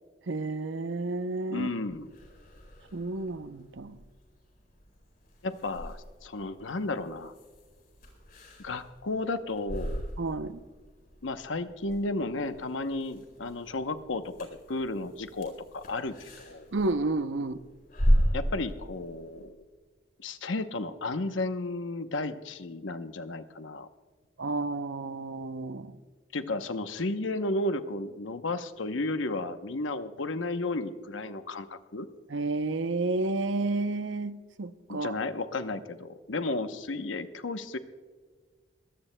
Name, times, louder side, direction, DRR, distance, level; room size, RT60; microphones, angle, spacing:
voice 1, 0.3-1.7 2.9-4.0 10.2-10.6 16.7-17.6 24.4-25.9 32.3-34.3 34.6-35.2, right 3 dB, 80° right, 12 dB, 0.7 m, -31 dB
voice 2, 1.5-2.1 5.4-7.3 8.6-10.0 11.2-16.7 18.3-19.6 20.2-23.9 26.3-32.1 34.9-37.8, left 2 dB, 90° left, 9 dB, 0.8 m, -33 dB
sound 1, 1.9-19.5, equal, 50° left, 4.4 m, -35 dB
22.5 x 17.0 x 2.2 m, 1.5 s
head